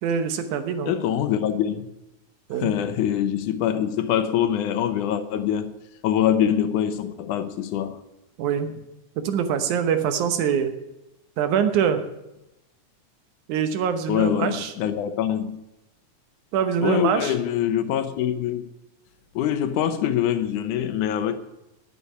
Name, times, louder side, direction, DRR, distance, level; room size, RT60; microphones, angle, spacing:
voice 1, 0.0-1.0 2.5-2.7 8.4-8.7 9.2-10.7 11.4-12.0 13.5-14.7 16.5-17.3, right 8 dB, 80° right, 2.5 m, -24 dB
voice 2, 0.9-1.9 2.6-5.7 6.0-8.0 14.1-15.6 16.8-18.7 19.4-21.3, left 10 dB, 85° left, 2.4 m, -24 dB
9.7 x 8.2 x 9.3 m
omnidirectional pair, 3.5 m